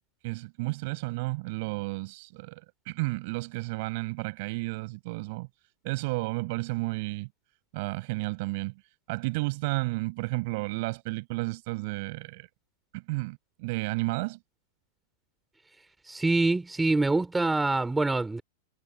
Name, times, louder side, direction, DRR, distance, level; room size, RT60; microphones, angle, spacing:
voice 1, 0.2-5.5 5.8-7.3 7.7-8.7 9.1-12.5 12.9-14.4, right 25 dB, 50° right, 7.4 m, -32 dB
voice 2, 16.1-18.4, right 2 dB, 5° right, 4.2 m, -25 dB
supercardioid pair, 155°, 0 cm